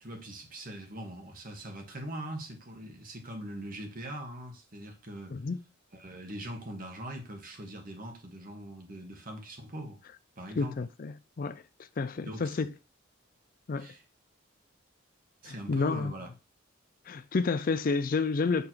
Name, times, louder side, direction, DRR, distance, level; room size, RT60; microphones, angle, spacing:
voice 1, 0.0-5.4 5.9-10.0 10.4-10.7 12.2-12.6 13.8-14.0 15.4-16.3, right 1 dB, 45° right, 1.6 m, -41 dB
voice 2, 10.6-11.6 12.0-12.7 13.7-13.9 15.4-16.1 17.1-18.7, left 4 dB, 45° left, 0.4 m, -30 dB
6.8 x 3.6 x 4.5 m
head